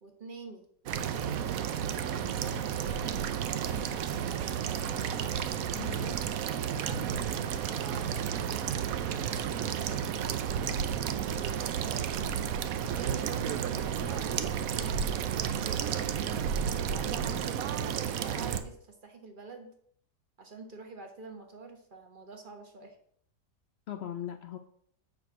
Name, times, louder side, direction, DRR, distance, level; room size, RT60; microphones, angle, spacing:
voice 1, 0.0-4.6 6.8-9.2 9.6-12.2 12.8-17.6 18.2-19.7 20.4-23.0, right 4 dB, 35° right, 4 dB, 1.3 m, -48 dB
sound 1, 0.9-18.6, right 8 dB, 65° right, 1.0 m, -32 dB
voice 2, 5.7-6.4 23.9-24.6, left 10 dB, 90° left, 7 dB, 0.5 m, -40 dB
7.9 x 4.3 x 6.0 m, 0.64 s
omnidirectional pair, 1.8 m